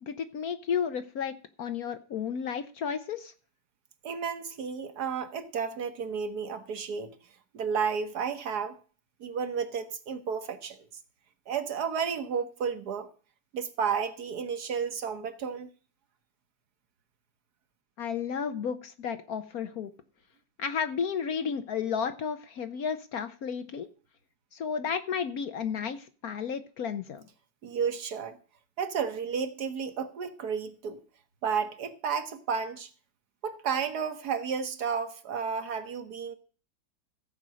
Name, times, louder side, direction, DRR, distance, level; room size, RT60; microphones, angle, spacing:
voice 1, 0.0-3.3 18.0-19.9 20.6-23.9 24.5-27.2, left 7 dB, 60° left, 1.1 m, -32 dB
voice 2, 4.0-7.1 7.5-8.8 9.2-10.8 11.5-13.1 13.5-15.7 27.6-28.4 28.8-31.0 31.4-32.9 33.4-36.4, right 6 dB, 60° right, 1.5 m, -32 dB
14.5 x 5.2 x 7.6 m
omnidirectional pair, 2.0 m